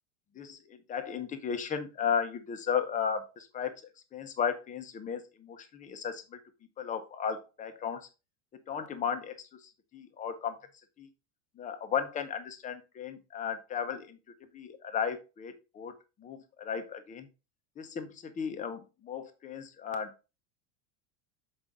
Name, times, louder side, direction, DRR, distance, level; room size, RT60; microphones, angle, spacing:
voice 1, 0.3-3.8 4.1-6.4 6.8-8.1 8.7-10.7 11.0-11.1 11.6-14.2 14.5-17.3 17.8-20.1, left 7 dB, 20° left, 9 dB, 0.8 m, -35 dB
6.9 x 5.2 x 3.6 m, 0.29 s
supercardioid pair, 160°, 40 cm